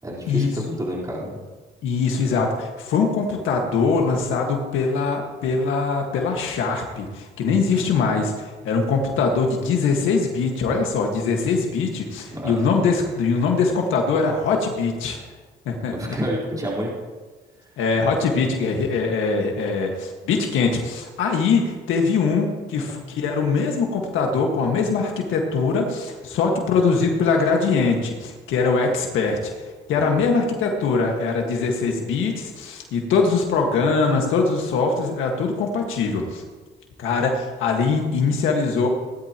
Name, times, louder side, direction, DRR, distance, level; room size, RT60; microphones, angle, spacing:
voice 1, 0.0-1.4 12.3-12.6 15.9-16.9 22.7-22.8 29.9-30.2, equal, 20° right, -5 dB, 4.1 m, -29 dB
voice 2, 1.8-15.2 15.7-16.2 17.8-29.4 29.9-36.4 37.0-38.9, left 4 dB, 85° left, 1 dB, 1.7 m, -22 dB
17.5 x 11.5 x 3.0 m, 1.4 s
cardioid pair, 90°, 20 cm